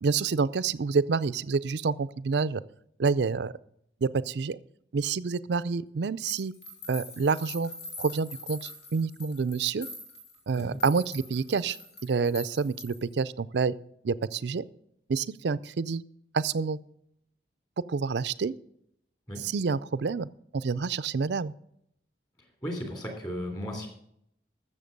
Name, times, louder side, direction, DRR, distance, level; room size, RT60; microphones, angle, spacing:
voice 1, 0.0-2.6 3.0-3.5 4.0-4.6 4.9-6.5 6.9-7.7 8.0-9.9 10.5-11.8 12.0-13.7 14.0-14.6 15.1-16.0 16.3-16.8 17.9-18.5 19.4-20.3 20.5-21.5, right 5 dB, 70° right, 17 dB, 0.5 m, -28 dB
sound 1, 6.3-13.1, left 2 dB, 65° left, 3.8 m, -44 dB
voice 2, 22.6-23.9, equal, 20° left, 3 dB, 2.9 m, -35 dB
14.0 x 7.0 x 5.3 m, 0.73 s
head